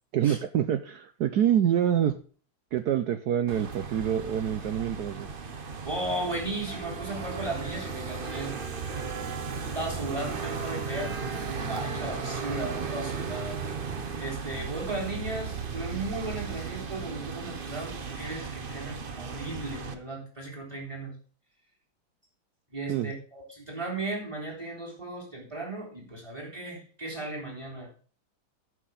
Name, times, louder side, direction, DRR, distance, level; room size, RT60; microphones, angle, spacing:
voice 1, 0.1-2.2 2.7-5.3 22.9-23.1, right 9 dB, 65° right, 10 dB, 1.0 m, -26 dB
sound 1, 3.5-19.9, right 5 dB, 40° right, 0.8 m, -35 dB
voice 2, 5.8-8.6 9.6-11.1 11.6-13.6 14.2-21.2 22.7-27.9, right 2 dB, 15° right, 1 dB, 3.5 m, -36 dB
9.5 x 6.1 x 6.3 m, 0.40 s
omnidirectional pair, 2.2 m